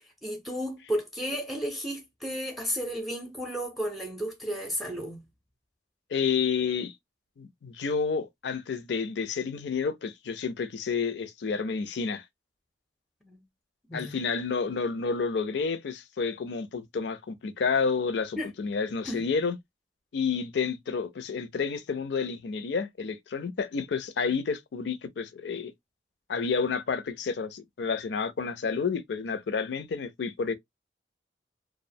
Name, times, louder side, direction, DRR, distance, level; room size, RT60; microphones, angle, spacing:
voice 1, 0.0-5.3 13.2-13.4 13.9-14.2 18.4-18.5 19.0-19.3, equal, ahead, 0.5 m, -33 dB
voice 2, 6.1-6.9 7.4-12.2 13.9-19.6 20.1-25.7 26.3-30.5, left 5 dB, 75° left, 0.4 m, -30 dB
2.3 x 2.0 x 2.6 m
head